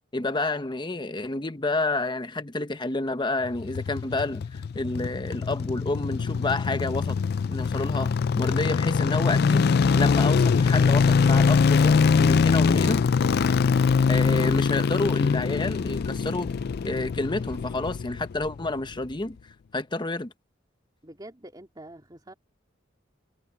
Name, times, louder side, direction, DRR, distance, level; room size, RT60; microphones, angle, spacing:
voice 1, 0.1-7.2 7.5-9.6 9.9-13.0 14.1-16.5 16.8-19.4 19.7-20.3, left 2 dB, 25° left, 0.9 m, -29 dB
sound 1, 3.4-18.7 18.9-19.0, left 5 dB, 55° left, 0.4 m, -23 dB
voice 2, 21.0-22.3, right 1 dB, 20° right, 3.1 m, -45 dB
head